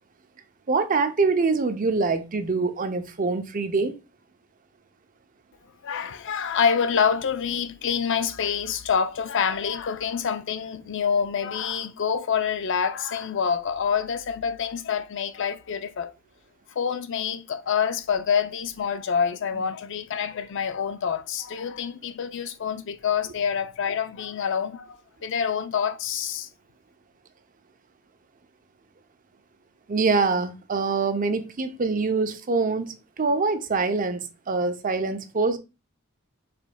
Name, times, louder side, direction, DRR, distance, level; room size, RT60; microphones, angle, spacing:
voice 1, 0.7-3.9 29.9-35.6, right 4 dB, 40° right, 0.6 m, -24 dB
voice 2, 5.8-16.1 16.8-26.5, left 7 dB, 60° left, 0.5 m, -27 dB
5.1 x 3.9 x 2.2 m
head